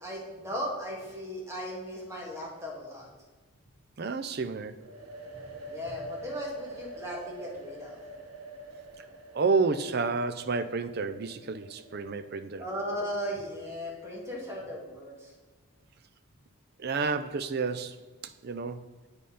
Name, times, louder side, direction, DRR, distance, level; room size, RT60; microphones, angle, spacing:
voice 1, 0.0-3.1 5.7-8.0 12.6-15.3, equal, 15° right, -3 dB, 1.9 m, -37 dB
voice 2, 4.0-4.8 9.0-9.1 9.3-12.6 16.8-18.8, right 4 dB, 45° right, 11 dB, 0.5 m, -30 dB
sound 1, 4.8-12.5, right 1 dB, 85° right, 1.1 m, -46 dB
8.2 x 5.3 x 5.6 m, 1.3 s
head